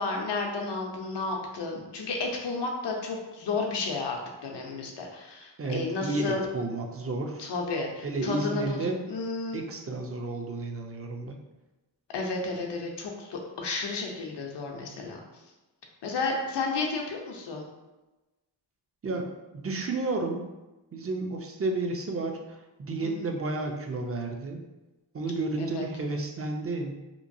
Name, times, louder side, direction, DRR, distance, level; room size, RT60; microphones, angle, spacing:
voice 1, 0.0-6.4 7.4-9.6 12.1-15.2 16.0-17.7 23.0-23.3 25.6-25.8, left 3 dB, 70° left, 1 dB, 0.7 m, -32 dB
voice 2, 5.6-7.5 8.0-9.0 9.5-11.4 19.0-19.3 19.5-20.4 20.9-24.6 25.1-26.9, right 2 dB, 30° right, 3 dB, 0.5 m, -31 dB
3.0 x 2.2 x 2.6 m, 1.1 s
cardioid pair, 45°, 44 cm